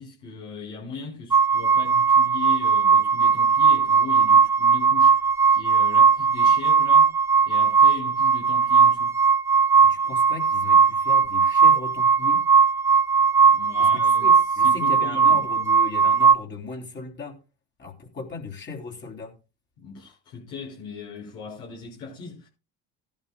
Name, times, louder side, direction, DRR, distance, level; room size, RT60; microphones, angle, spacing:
voice 1, 0.0-5.2 5.5-7.1 7.4-9.2 13.4-15.4 19.8-22.5, left 4 dB, 75° left, 6.1 m, -38 dB
sound 1, 1.3-16.3, right 6 dB, 10° right, 0.6 m, -18 dB
voice 2, 9.8-12.4 13.8-17.4 17.8-19.3, left 4 dB, 35° left, 3.4 m, -37 dB
17.5 x 11.0 x 2.3 m
supercardioid pair, 85°, 33 cm